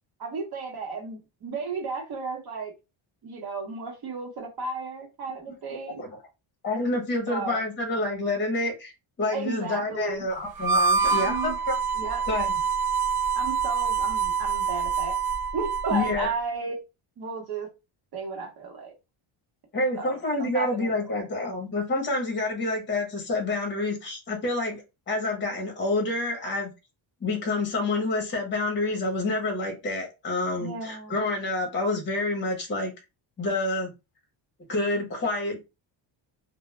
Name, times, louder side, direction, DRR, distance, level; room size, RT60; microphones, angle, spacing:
voice 1, 0.2-2.7 3.2-6.0 7.3-7.6 9.3-10.3 11.0-11.6 11.9-12.2 13.3-15.2 15.5-16.8 17.2-17.7 18.1-18.9 19.9-20.9 30.6-31.3, right 4 dB, 50° right, 0.9 m, -33 dB
voice 2, 6.6-8.9 9.2-11.8 12.3-12.5 15.9-16.3 19.7-26.7 27.2-32.9 33.4-33.9 34.7-35.6, left 2 dB, 25° left, 0.7 m, -28 dB
Harmonica, 10.5-16.2, right 5 dB, 75° right, 1.2 m, -26 dB
2.2 x 2.1 x 3.0 m
cardioid pair, 160°, 48 cm